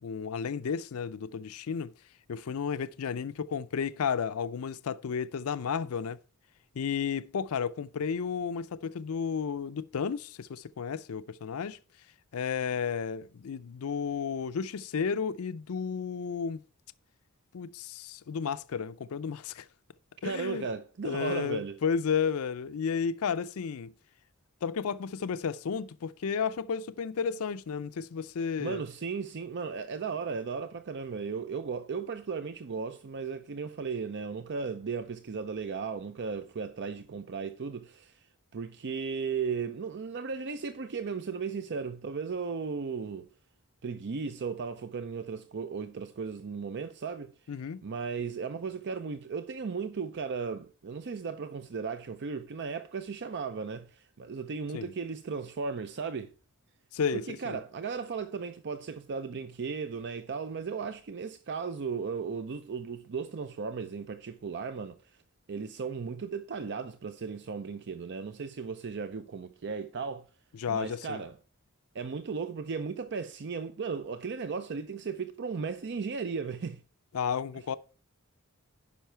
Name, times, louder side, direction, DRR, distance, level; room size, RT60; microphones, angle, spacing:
voice 1, 0.0-1.9 2.3-6.2 6.8-11.8 12.3-16.6 17.5-19.7 20.2-20.7 21.0-23.9 24.6-28.8 47.5-47.8 54.7-54.9 56.9-57.6 70.5-71.2 77.1-77.8, left 6 dB, 75° left, 0.4 m, -32 dB
voice 2, 20.2-21.8 28.6-38.3 38.5-43.3 43.8-47.3 47.8-56.3 57.1-65.2 65.5-70.3 70.7-71.4 71.9-76.8, right 5 dB, 55° right, 0.5 m, -36 dB
10.0 x 5.6 x 4.5 m
head